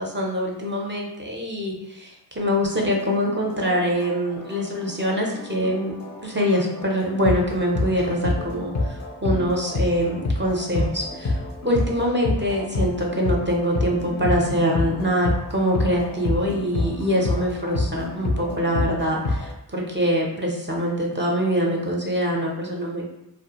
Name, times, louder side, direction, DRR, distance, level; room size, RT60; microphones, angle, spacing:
voice 1, 0.0-6.0 6.2-11.4 11.6-23.0, equal, 25° right, -2 dB, 0.5 m, -24 dB
sound 1, 2.7-19.5, left 2 dB, 40° left, 0.4 m, -28 dB
2.4 x 2.1 x 2.8 m, 0.85 s
wide cardioid pair, 55°, 44 cm